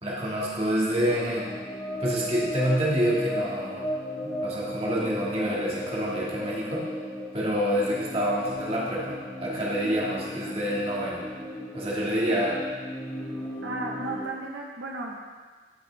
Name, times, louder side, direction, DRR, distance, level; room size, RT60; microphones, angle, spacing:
voice 1, 0.0-1.5 2.0-3.8 4.2-6.8 7.3-11.2 11.7-12.6, equal, 30° right, -5 dB, 1.9 m, -27 dB
sound 1, 1.0-14.3, equal, 10° left, 1.4 m, -35 dB
voice 2, 13.6-15.3, right 2 dB, 80° right, -1 dB, 1.0 m, -34 dB
14.5 x 6.0 x 3.4 m, 1.4 s
head